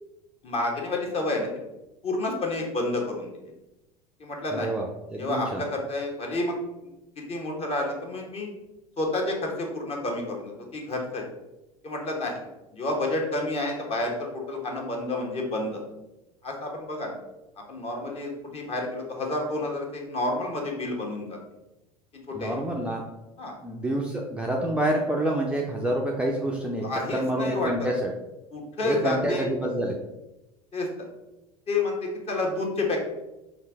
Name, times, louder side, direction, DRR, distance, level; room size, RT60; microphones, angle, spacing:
voice 1, 0.4-1.5 2.0-3.3 4.2-4.7 5.2-6.6 7.2-8.5 9.0-11.2 11.8-12.4 12.7-15.8 16.4-17.2 17.7-21.4 22.3-22.6 23.4-23.5 26.8-27.7 28.5-29.5 30.7-31.1 31.7-33.0, left 2 dB, 35° left, 0 dB, 1.2 m, -29 dB
voice 2, 4.5-4.8 5.1-5.6 22.3-23.0 23.6-26.9 27.1-28.1 28.8-30.0, right 1 dB, 5° right, -2 dB, 0.5 m, -27 dB
5.5 x 2.6 x 3.5 m, 0.98 s
figure-of-eight pair, 75°, 19 cm